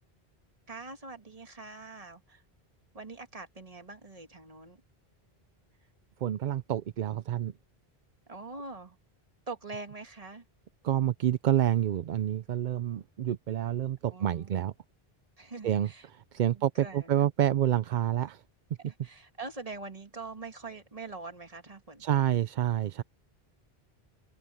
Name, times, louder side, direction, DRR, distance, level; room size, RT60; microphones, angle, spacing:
voice 1, 0.7-2.4 2.9-4.8 8.3-9.0 9.5-10.5 14.1-14.6 15.4-16.1 16.5-17.3 18.9-22.2, right 3 dB, 35° right, 1.8 m, -44 dB
voice 2, 6.2-7.5 10.8-14.7 15.6-18.4 22.0-23.0, right 11 dB, 55° right, 0.6 m, -28 dB
open air
omnidirectional pair, 1.0 m